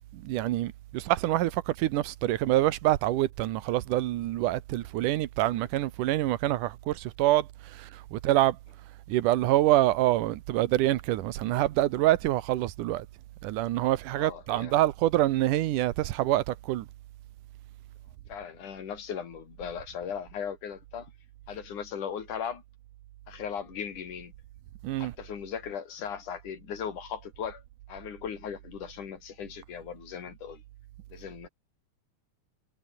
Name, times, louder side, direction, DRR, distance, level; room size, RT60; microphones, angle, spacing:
voice 1, 0.1-8.6 9.1-13.1 13.4-16.9 24.8-25.1, right 15 dB, 85° right, 2.5 m, -26 dB
voice 2, 14.2-14.7 18.3-21.1 21.5-22.6 23.3-24.3 25.0-27.6 27.9-30.6 31.1-31.5, left 7 dB, 75° left, 4.2 m, -38 dB
omnidirectional pair, 3.6 m